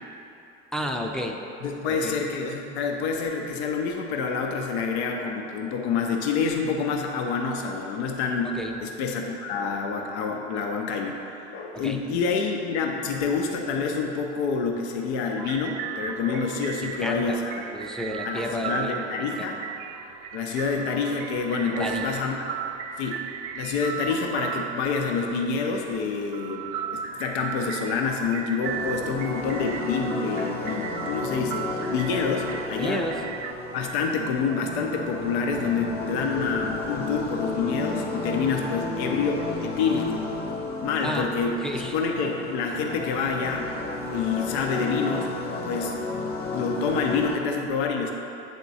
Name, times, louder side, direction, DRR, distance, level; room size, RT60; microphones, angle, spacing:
voice 1, 0.7-1.4 1.8-2.2 8.4-8.8 11.7-12.0 16.8-17.4 17.7-19.6 21.8-22.2 32.8-33.2 41.0-41.3 41.6-42.0, left 1 dB, ahead, 1 dB, 0.5 m, -32 dB
voice 2, 1.6-17.6 18.2-19.6 20.3-22.4 23.0-23.2 23.5-33.0 33.7-40.2 40.8-43.7 44.1-45.3 45.6-45.9 46.5-48.1, left 5 dB, 80° left, 2 dB, 0.7 m, -27 dB
sound 1, 15.4-33.5, right 8 dB, 65° right, 0.5 m, -36 dB
sound 2, 28.6-47.4, left 3 dB, 30° left, 0.8 m, -32 dB
8.0 x 3.6 x 4.1 m, 2.9 s
hypercardioid pair, 80°, 33 cm